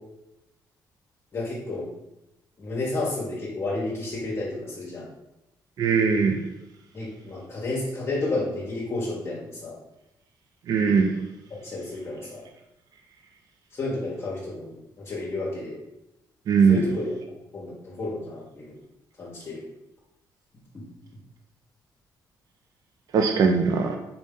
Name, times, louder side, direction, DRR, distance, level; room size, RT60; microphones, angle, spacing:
voice 1, 1.3-1.9 2.6-5.1 6.9-9.8 11.5-12.4 13.7-15.8 16.7-17.2 17.5-18.8 19.2-19.6, left 2 dB, 40° left, -5 dB, 1.0 m, -31 dB
voice 2, 5.8-6.4 10.7-11.1 16.5-16.9 23.1-24.0, right 5 dB, 60° right, 4 dB, 0.4 m, -20 dB
4.1 x 2.6 x 3.6 m, 0.91 s
cardioid pair, 105°, 7 cm